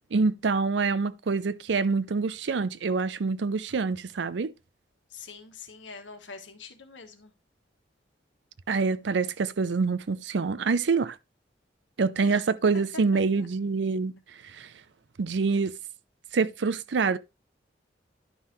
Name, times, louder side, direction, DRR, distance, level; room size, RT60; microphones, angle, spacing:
voice 1, 0.1-4.5 8.7-11.2 12.0-14.1 14.5-14.7 15.2-15.7 16.3-17.2, right 4 dB, 75° right, 0.5 m, -26 dB
voice 2, 5.1-7.3 12.2-12.4 12.7-13.5, left 4 dB, 85° left, 1.5 m, -44 dB
11.0 x 5.6 x 3.1 m
head